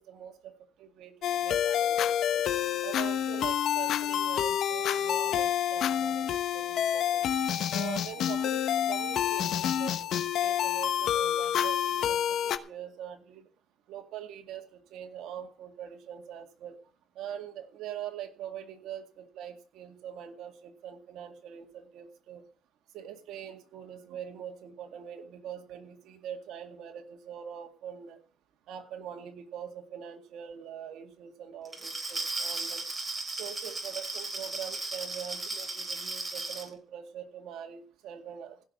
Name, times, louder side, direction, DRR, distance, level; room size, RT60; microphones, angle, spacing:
voice 1, 0.0-2.4 2.8-6.3 6.5-7.3 7.7-13.5 13.9-16.7 17.2-22.4 22.9-28.2 28.7-32.8 33.4-38.7, right 9 dB, 85° right, 5 dB, 2.1 m, -43 dB
sound 1, 1.2-12.6, left 10 dB, 75° left, 1.0 m, -28 dB
Glass, 31.6-36.7, right 3 dB, 25° right, 4.2 m, -36 dB
16.0 x 6.0 x 8.3 m, 0.42 s
cardioid pair, 90°, 0 cm